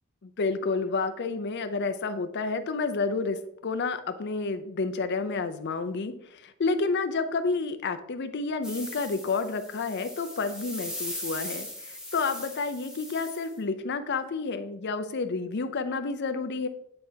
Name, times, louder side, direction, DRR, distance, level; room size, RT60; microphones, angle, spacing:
voice 1, 0.2-16.7, left 4 dB, 50° left, 9 dB, 0.5 m, -30 dB
sound 1, 8.6-13.5, left 1 dB, 5° right, 1.0 m, -39 dB
9.5 x 4.4 x 2.8 m, 0.76 s
head